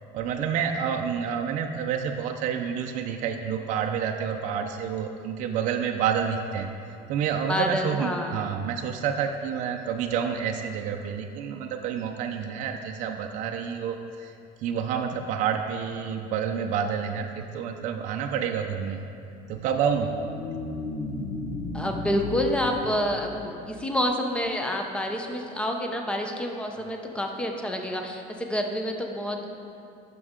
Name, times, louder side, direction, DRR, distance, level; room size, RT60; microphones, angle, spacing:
voice 1, 0.1-14.3 14.6-19.0 19.5-20.2, right 7 dB, 50° right, 3 dB, 0.5 m, -29 dB
voice 2, 7.5-8.5 21.7-29.5, left 1 dB, 5° left, 3 dB, 0.6 m, -28 dB
sound 1, 19.5-24.0, left 2 dB, 65° left, 0.9 m, -35 dB
11.5 x 6.0 x 3.7 m, 2.6 s
cardioid pair, 145°, 16 cm